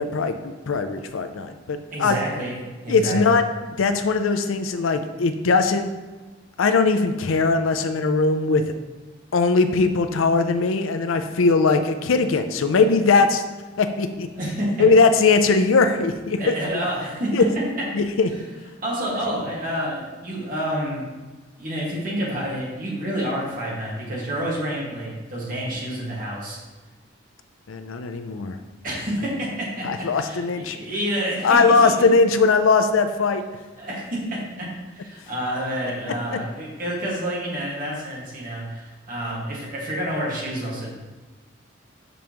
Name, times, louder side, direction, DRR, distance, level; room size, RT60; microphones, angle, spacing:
voice 1, 0.0-2.2 2.9-3.4 3.8-5.9 6.6-8.6 9.3-13.4 13.8-14.3 14.8-16.8 17.3-17.5 17.9-18.3 27.7-28.6 29.8-30.8 31.4-33.4 36.3-36.4, left 4 dB, 85° left, 8 dB, 0.5 m, -20 dB
voice 2, 1.9-3.4 14.3-14.9 16.4-17.3 18.3-18.4 18.8-21.1 21.6-26.6 28.8-32.1 33.8-40.9, equal, 45° right, -5 dB, 1.7 m, -29 dB
6.3 x 5.2 x 2.9 m, 1.3 s
head